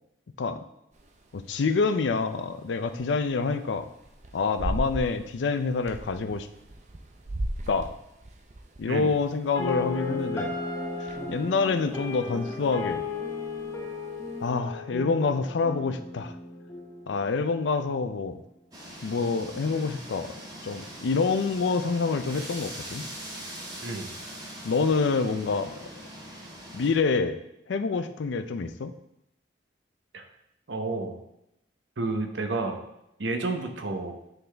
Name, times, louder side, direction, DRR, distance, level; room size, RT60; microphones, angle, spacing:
sound 1, 0.9-14.5, right 1 dB, 40° right, 0.6 m, -40 dB
voice 1, 1.3-3.9 4.3-6.5 7.7-7.9 8.8-10.5 11.0-13.0 14.4-16.3 17.1-18.4 19.0-20.3 20.6-23.1 24.6-25.8 26.7-27.4 27.7-28.9, left 4 dB, 80° left, 10 dB, 0.4 m, -27 dB
sound 2, 9.6-17.6, left 3 dB, 15° left, 0.8 m, -35 dB
sound 3, 18.7-26.9, right 1 dB, 20° right, 1.2 m, -42 dB
voice 2, 30.7-31.2 32.0-32.8 33.2-34.2, right 3 dB, 80° right, 5 dB, 0.8 m, -30 dB
9.1 x 3.9 x 3.4 m, 0.82 s
head